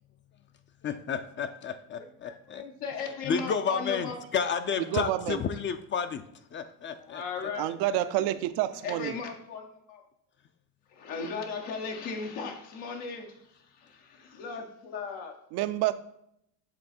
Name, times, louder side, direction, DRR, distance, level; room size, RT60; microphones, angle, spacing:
voice 1, 0.8-2.6 3.2-6.2 6.5-7.2, left 6 dB, 30° left, 10 dB, 0.4 m, -31 dB
voice 2, 1.9-4.2 4.9-5.0 7.0-8.3 8.8-10.0 10.9-15.3, left 5 dB, 85° left, 2 dB, 1.1 m, -37 dB
voice 3, 4.9-5.4 7.6-9.1 15.5-15.9, right 14 dB, 75° right, 13 dB, 0.6 m, -28 dB
7.6 x 3.3 x 4.2 m, 0.75 s
cardioid pair, 105°, 40 cm